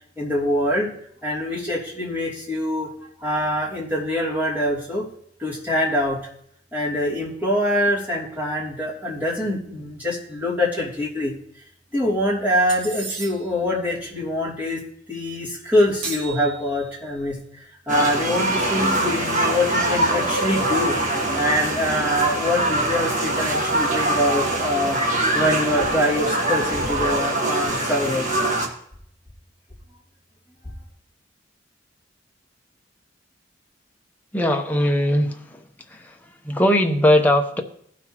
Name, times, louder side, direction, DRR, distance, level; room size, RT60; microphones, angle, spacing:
voice 1, 0.2-0.9 1.2-2.9 3.2-5.1 5.4-6.2 6.7-11.3 11.9-14.8 15.1-17.3 17.9-20.9 21.3-25.0 25.3-28.3, left 1 dB, 10° right, 2.9 m, -24 dB
sound 1, 12.7-13.6 16.0-17.1, right 4 dB, 80° right, 1.7 m, -34 dB
sound 2, 17.9-28.7, right 2 dB, 45° right, 1.4 m, -23 dB
voice 2, 34.3-36.2 36.4-37.6, left 1 dB, 10° left, 0.8 m, -20 dB
16.5 x 5.9 x 3.0 m
head